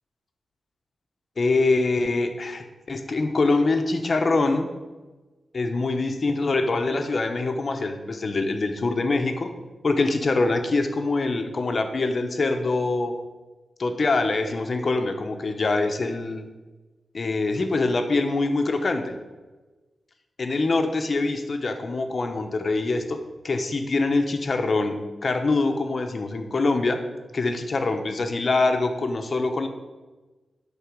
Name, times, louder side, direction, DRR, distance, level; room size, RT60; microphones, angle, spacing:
voice 1, 1.4-4.7 5.5-9.5 9.8-13.2 13.8-16.5 17.1-19.2 20.4-23.2 23.4-27.0 27.3-29.7, left 3 dB, 40° left, 6 dB, 1.0 m, -24 dB
11.0 x 4.2 x 7.1 m, 1.2 s
wide cardioid pair, 130°, 0 cm